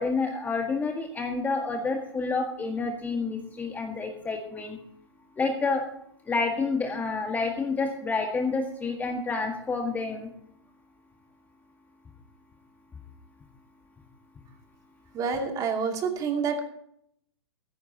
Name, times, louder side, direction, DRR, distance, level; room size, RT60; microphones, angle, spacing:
voice 1, 0.0-4.8 5.4-5.8 6.3-10.3, left 4 dB, 10° left, 3 dB, 1.7 m, -29 dB
voice 2, 15.1-16.7, right 5 dB, 25° right, 3 dB, 2.6 m, -28 dB
15.0 x 15.0 x 2.9 m, 0.68 s
hypercardioid pair, 135°, 15 cm